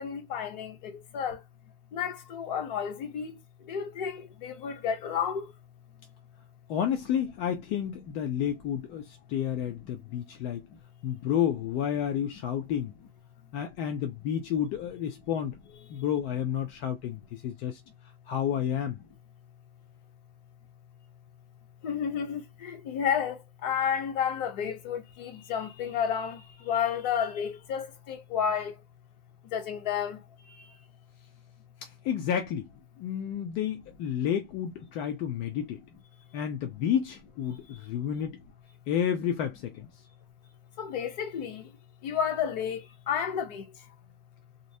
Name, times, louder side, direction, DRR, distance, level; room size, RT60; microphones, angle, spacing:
voice 1, 0.0-1.4 1.9-5.5 10.1-10.2 15.9-16.0 21.8-28.8 29.4-30.8 37.7-37.8 40.8-41.7 42.0-43.9, left 8 dB, 45° left, 0.8 m, -32 dB
voice 2, 6.7-10.6 11.0-12.9 13.5-15.6 15.9-17.8 18.3-19.0 31.8-32.7 33.0-35.8 36.3-38.4 38.9-39.9, left 9 dB, 30° left, 0.4 m, -30 dB
2.5 x 2.1 x 2.6 m
hypercardioid pair, 125°, 30 cm